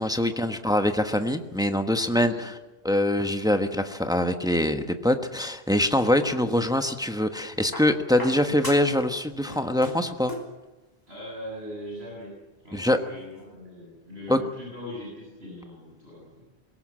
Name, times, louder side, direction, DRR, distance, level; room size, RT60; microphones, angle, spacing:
voice 1, 0.0-2.6 2.8-10.3 12.7-13.0 14.3-14.4, left 1 dB, 5° right, 7 dB, 1.1 m, -24 dB
voice 2, 2.2-2.5 11.1-12.4 12.6-16.4, left 1 dB, 80° right, -4 dB, 7.8 m, -40 dB
sound 1, 5.9-6.9 7.7-9.1 9.3-10.6 11.7-11.8, left 1 dB, 20° left, 3.2 m, -39 dB
22.0 x 18.5 x 7.6 m, 1.1 s
omnidirectional pair, 1.0 m